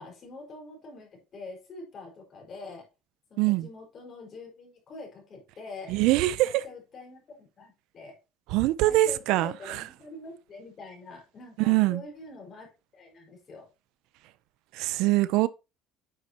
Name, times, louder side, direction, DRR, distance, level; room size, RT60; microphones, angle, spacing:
voice 1, 0.0-2.9 3.3-5.9 6.4-8.2 8.8-12.7 12.9-13.7, left 3 dB, 40° left, 5.0 m, -45 dB
voice 2, 3.4-3.7 5.9-6.6 8.5-9.8 11.6-12.0 14.7-15.5, right 17 dB, 75° right, 0.5 m, -23 dB
9.6 x 6.5 x 2.9 m
cardioid pair, 115°, 0 cm